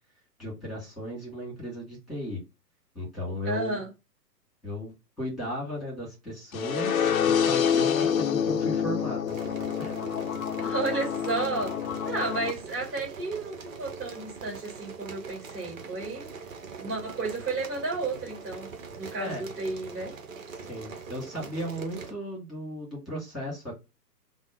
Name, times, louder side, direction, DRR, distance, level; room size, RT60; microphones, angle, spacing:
voice 1, 0.4-2.4 2.9-3.8 4.6-9.3 9.8-10.0 19.2-19.4 20.5-23.7, equal, ahead, 2.0 m, -35 dB
voice 2, 3.5-3.9 10.6-11.8 12.0-16.3 16.8-18.7 19.0-20.1, right 3 dB, 25° right, 2.2 m, -32 dB
sound 1, 6.5-12.5, left 8 dB, 55° left, 0.6 m, -27 dB
sound 2, 9.3-22.1, right 5 dB, 55° right, 0.9 m, -42 dB
3.6 x 2.1 x 3.5 m
figure-of-eight pair, 125°, 49 cm